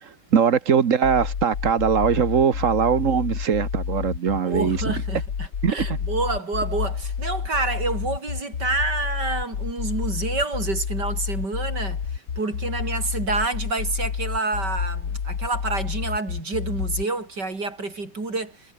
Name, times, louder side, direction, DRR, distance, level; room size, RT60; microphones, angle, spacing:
voice 1, 0.0-4.9 5.6-6.0, right 7 dB, 50° right, 1.4 m, -21 dB
sound 1, 1.0-17.0, left 7 dB, 75° left, 2.4 m, -29 dB
voice 2, 4.3-12.0 12.4-18.6, right 3 dB, 75° right, 5.6 m, -28 dB
omnidirectional pair, 1.8 m